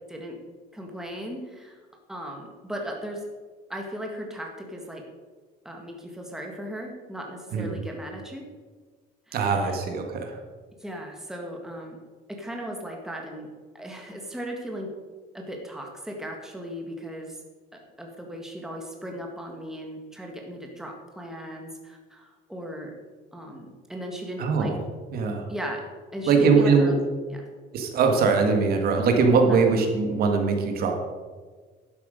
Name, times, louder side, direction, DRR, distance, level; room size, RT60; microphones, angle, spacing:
voice 1, 0.7-1.8 2.1-3.3 3.7-5.0 5.6-8.5 9.3-9.5 10.8-12.0 12.3-13.5 13.7-14.9 15.3-17.4 18.0-22.9 23.3-24.7 25.5-25.8 26.1-27.0 27.3-27.5 29.5-29.6, equal, 5° right, 1 dB, 1.6 m, -37 dB
voice 2, 9.3-10.4 24.4-24.8 25.1-25.5 26.3-26.9 27.7-31.1, right 4 dB, 55° right, 4 dB, 1.8 m, -21 dB
11.0 x 8.3 x 5.1 m, 1.5 s
cardioid pair, 135°, 18 cm